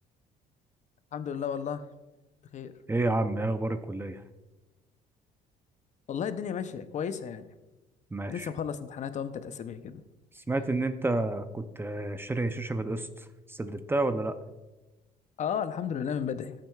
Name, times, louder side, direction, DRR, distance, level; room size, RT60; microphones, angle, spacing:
voice 1, 1.1-1.9 2.5-2.7 6.1-7.5 8.3-10.0 15.4-16.5, left 7 dB, 45° left, 12 dB, 0.6 m, -33 dB
voice 2, 2.9-4.2 8.1-8.5 10.3-14.4, right 2 dB, 15° right, 10 dB, 0.5 m, -30 dB
14.0 x 7.5 x 2.3 m, 1.1 s
cardioid pair, 110°, 17 cm